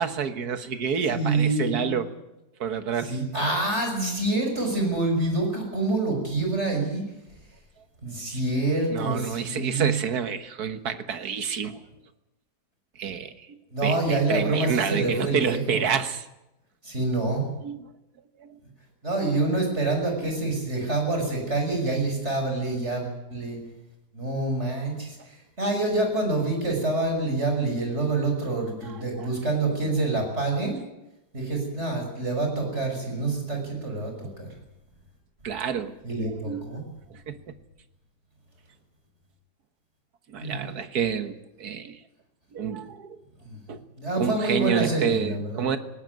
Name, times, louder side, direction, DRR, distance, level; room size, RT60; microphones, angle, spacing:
voice 1, 0.0-2.1 2.6-3.2 8.3-8.4 8.9-11.8 13.0-16.3 17.6-17.9 18.4-18.6 20.2-20.3 28.9-29.3 35.4-35.9 36.4-36.7 37.1-37.4 40.3-42.0 42.5-43.2 43.7-43.8 44.2-45.8, right 7 dB, 65° right, 10 dB, 1.8 m, -29 dB
voice 2, 1.1-2.0 3.0-7.0 8.0-10.0 13.7-15.8 16.8-17.5 19.0-23.6 24.1-30.8 31.3-34.5 36.0-36.8 40.4-40.7 43.4-43.6 44.0-45.7, right 2 dB, 40° right, 3 dB, 6.3 m, -27 dB
20.0 x 18.0 x 9.3 m, 0.93 s
omnidirectional pair, 1.8 m